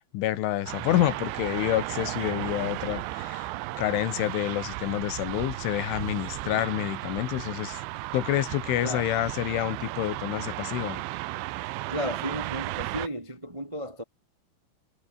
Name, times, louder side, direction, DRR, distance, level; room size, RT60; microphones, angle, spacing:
voice 1, 0.1-3.5 3.8-7.8 8.1-11.0, left 14 dB, 75° left, 3.8 m, -28 dB
sound 1, 0.7-13.1, right 18 dB, 80° right, 2.9 m, -35 dB
voice 2, 11.9-14.0, equal, 40° right, 0.4 m, -34 dB
omnidirectional pair, 5.9 m